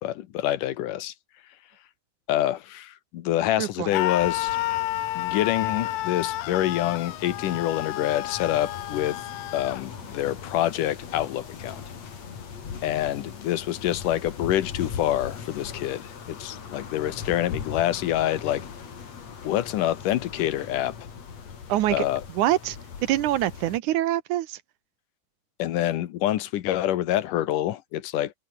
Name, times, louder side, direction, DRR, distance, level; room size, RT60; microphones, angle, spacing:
voice 1, 0.0-1.1 2.3-4.6 5.2-9.2 9.5-11.8 12.8-18.7 19.4-21.1 21.9-22.2 25.6-28.3, left 13 dB, 75° left, 2.6 m, -26 dB
voice 2, 3.6-4.0 21.7-22.1 22.3-24.6, right 14 dB, 70° right, 2.2 m, -25 dB
Screaming, 3.9-9.8, left 17 dB, 90° left, 2.6 m, -30 dB
sound 1, 4.2-23.8, left 6 dB, 55° left, 4.1 m, -40 dB
omnidirectional pair, 3.9 m